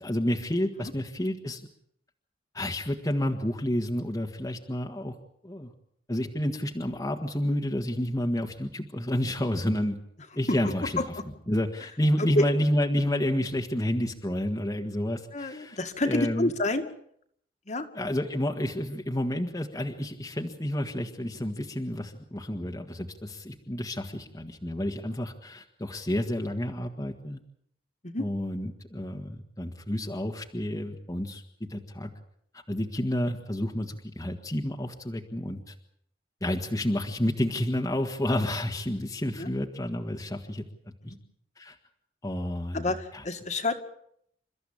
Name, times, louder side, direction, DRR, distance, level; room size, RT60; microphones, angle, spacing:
voice 1, 0.0-1.6 2.5-5.1 5.4-5.7 6.1-10.0 10.3-10.9 11.5-15.8 16.0-16.5 17.9-27.4 28.2-32.1 32.5-35.7 36.4-40.6 41.0-41.1 41.6-41.7 42.2-42.8 43.1-43.2, left 1 dB, 20° left, 2 dB, 1.7 m, -30 dB
voice 2, 10.5-11.1 12.2-12.4 15.3-16.9 17.7-17.9 28.0-28.2 39.4-39.5 41.0-41.2 42.7-43.7, left 2 dB, 40° left, 6 dB, 2.1 m, -28 dB
29.0 x 14.0 x 8.8 m, 0.70 s
head